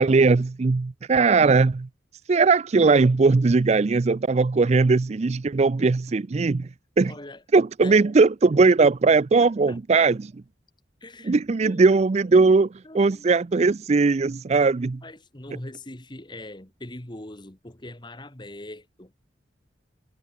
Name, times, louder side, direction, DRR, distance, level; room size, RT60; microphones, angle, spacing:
voice 1, 0.0-1.9 2.3-6.7 7.0-7.1 7.5-10.2 11.2-12.7 12.9-15.0, right 4 dB, 35° right, 0.4 m, -19 dB
voice 2, 7.0-7.4 7.8-8.0 9.4-10.1 11.0-11.4 11.6-11.9 12.8-13.4 15.0-19.1, left 1 dB, 25° left, 2.0 m, -41 dB
head